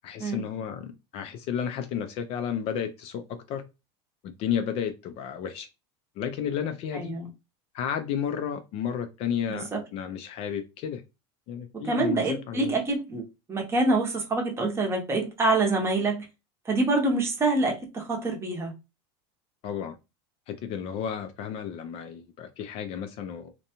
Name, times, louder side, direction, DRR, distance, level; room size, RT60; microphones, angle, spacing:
voice 1, 0.0-3.6 4.2-5.7 6.2-7.1 7.7-11.0 11.5-12.7 19.6-20.0 20.5-23.5, left 8 dB, 45° left, 0.4 m, -32 dB
voice 2, 6.9-7.3 9.5-9.8 11.8-13.2 13.5-16.3 16.7-18.7, right 2 dB, 20° right, 0.7 m, -26 dB
2.6 x 2.2 x 2.8 m
supercardioid pair, 140°, 14 cm